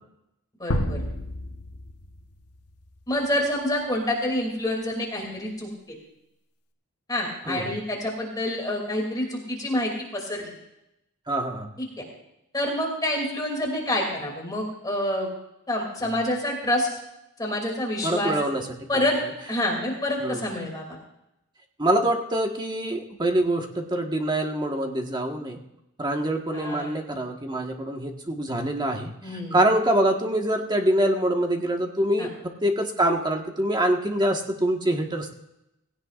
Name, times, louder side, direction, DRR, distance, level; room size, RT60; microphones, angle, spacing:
voice 1, 0.6-1.0 3.1-6.0 7.1-10.6 11.8-11.9 12.5-15.3 15.7-16.9 17.4-18.3 18.9-19.2 19.5-20.9 26.5-26.9 29.2-29.6 32.2-32.3, left 1 dB, 15° left, 0 dB, 2.8 m, -27 dB
sound 1, 0.7-3.1, left 1 dB, 90° left, 1.3 m, -30 dB
voice 2, 7.4-7.8 11.3-11.7 18.0-18.7 18.9-19.0 20.2-20.5 21.8-25.6 26.0-32.3 32.6-35.3, right 1 dB, 20° right, 2 dB, 1.6 m, -25 dB
18.0 x 17.0 x 2.5 m, 0.87 s
head